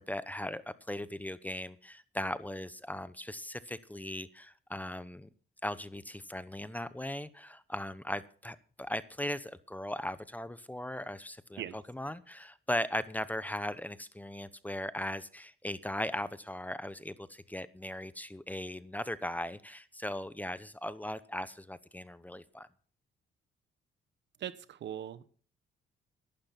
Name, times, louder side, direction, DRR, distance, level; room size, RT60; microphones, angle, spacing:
voice 1, 0.0-5.3 5.6-22.7, left 1 dB, 10° left, 15 dB, 0.8 m, -38 dB
voice 2, 24.4-25.3, right 10 dB, 65° right, 16 dB, 1.0 m, -40 dB
12.0 x 11.0 x 5.9 m, 0.43 s
cardioid pair, 90°, 20 cm